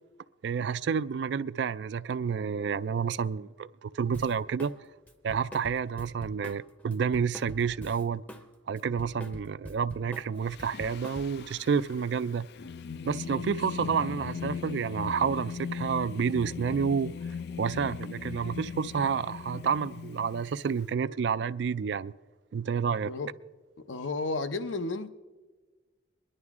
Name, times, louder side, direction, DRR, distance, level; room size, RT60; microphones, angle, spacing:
voice 1, 0.4-4.7 5.2-8.2 8.7-12.5 13.0-17.1 17.6-22.1 22.5-23.1, right 6 dB, 60° right, 0.3 m, -29 dB
Drum kit, 4.1-4.8 5.1-8.5 8.7-11.5, equal, 10° left, 0.6 m, -45 dB
Singing, 10.4-20.9, left 6 dB, 55° left, 0.4 m, -39 dB
voice 2, 23.9-25.1, left 3 dB, 75° left, 0.7 m, -32 dB
24.5 x 11.0 x 3.6 m
head